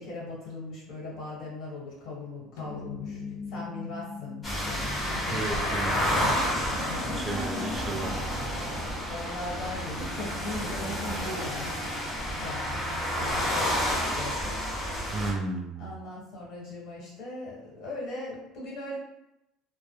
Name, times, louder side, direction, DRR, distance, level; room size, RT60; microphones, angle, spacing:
voice 1, 0.0-3.2 3.5-7.2 7.5-7.9 9.1-11.7 12.4-14.5 15.8-19.0, left 2 dB, 60° left, -5 dB, 1.3 m, -39 dB
sound 1, 2.6-7.2, left 5 dB, 85° left, 0.4 m, -41 dB
sound 2, 4.4-15.3, equal, 20° left, 0.8 m, -30 dB
voice 2, 5.3-6.2 7.0-8.1 15.1-15.9, right 2 dB, 25° right, 2 dB, 0.3 m, -34 dB
2.1 x 2.1 x 3.0 m, 0.88 s
supercardioid pair, 110°, 0 cm